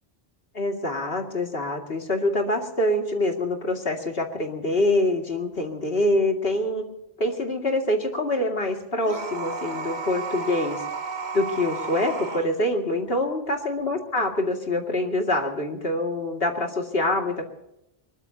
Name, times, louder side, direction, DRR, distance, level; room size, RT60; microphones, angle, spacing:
voice 1, 0.5-6.9 7.2-10.8 11.3-17.5, left 1 dB, 65° left, 3 dB, 2.6 m, -25 dB
sound 1, 9.0-12.5, right 4 dB, 45° right, 1.5 m, -32 dB
23.5 x 21.0 x 2.9 m, 0.85 s
omnidirectional pair, 1.1 m